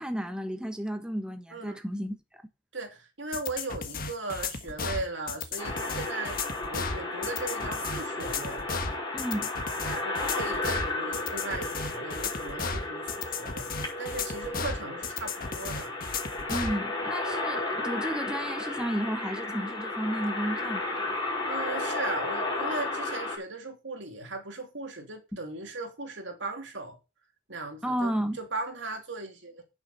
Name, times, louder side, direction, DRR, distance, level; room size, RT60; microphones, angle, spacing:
voice 1, 0.0-2.4 9.1-9.5 16.5-21.2 27.8-28.4, equal, 5° right, 1.1 m, -32 dB
voice 2, 2.7-6.4 6.7-8.6 9.8-15.9 21.4-27.0 27.5-29.6, right 3 dB, 70° right, 2.8 m, -38 dB
sound 1, 3.3-16.8, left 4 dB, 50° left, 1.4 m, -35 dB
sound 2, 5.6-23.4, left 2 dB, 25° left, 5.7 m, -33 dB
8.8 x 7.1 x 6.7 m
head